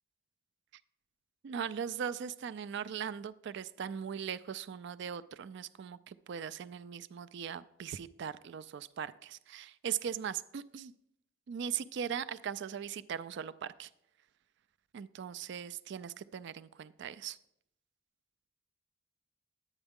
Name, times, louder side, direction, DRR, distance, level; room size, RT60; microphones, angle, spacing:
voice 1, 1.4-10.9 11.5-13.9 14.9-17.4, right 8 dB, 60° right, 15 dB, 0.4 m, -39 dB
11.0 x 8.9 x 3.6 m, 0.76 s
head